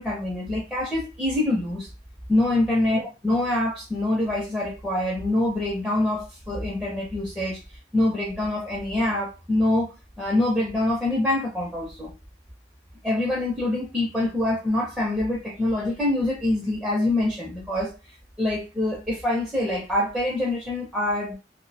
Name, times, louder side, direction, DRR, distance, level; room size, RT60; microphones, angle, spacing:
voice 1, 0.0-1.9 2.3-7.6 7.9-12.1 13.0-17.9 18.4-21.3, left 1 dB, 5° right, 0.5 m, -25 dB
2.4 x 2.0 x 2.7 m
head